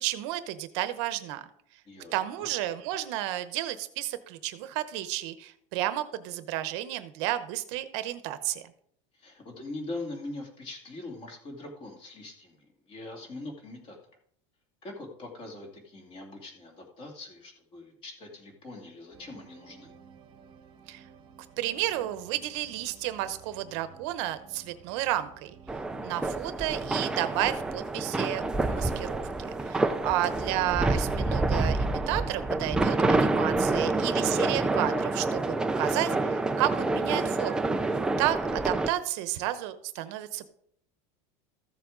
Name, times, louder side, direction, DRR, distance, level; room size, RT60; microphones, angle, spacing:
voice 1, 0.0-1.4 2.1-8.6 20.9-21.0 21.6-25.5 26.0-37.7 38.2-40.5, right 14 dB, 60° right, 11 dB, 0.8 m, -32 dB
voice 2, 1.9-2.5 9.1-14.0 14.8-19.9 29.8-30.4 33.7-33.9, left 2 dB, 30° left, 1 dB, 2.5 m, -42 dB
sound 1, 19.1-34.9, right 6 dB, 30° right, 1.1 m, -50 dB
sound 2, 25.7-38.9, right 2 dB, 5° right, 0.3 m, -28 dB
14.5 x 7.2 x 3.8 m, 0.67 s
cardioid pair, 170°, 17 cm